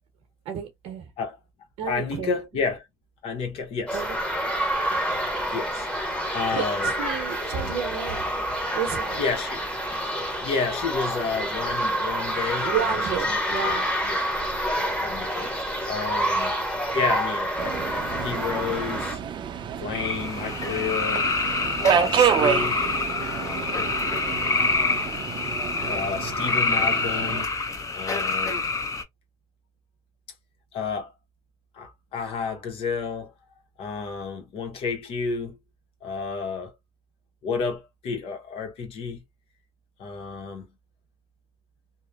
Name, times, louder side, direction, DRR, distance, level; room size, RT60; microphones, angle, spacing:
voice 1, 0.4-1.1 1.8-2.6 3.9-4.2 4.9-5.1 6.5-8.2 8.7-9.2 12.6-13.9, right 8 dB, 90° right, 0.8 m, -31 dB
voice 2, 1.9-2.8 3.2-4.0 5.5-5.9 6.3-6.9 9.2-9.6 10.4-13.0 13.3-13.4 13.6-14.3 14.8-15.5 15.9-16.5 16.9-17.8 18.1-19.2 19.8-21.3 21.8-22.9 23.3-24.0 25.9-27.5 27.9-28.7 30.7-31.1 31.7-33.3 33.8-35.6 36.0-36.8 37.4-39.2 40.0-40.7, left 5 dB, 70° left, 0.9 m, -31 dB
sound 1, 3.9-19.2, equal, 10° left, 1.1 m, -28 dB
Subway metro underground, 17.6-27.4, right 8 dB, 50° right, 0.5 m, -28 dB
sound 2, 19.9-29.0, left 3 dB, 30° left, 0.7 m, -26 dB
2.9 x 2.0 x 2.2 m
cardioid pair, 85°, 10 cm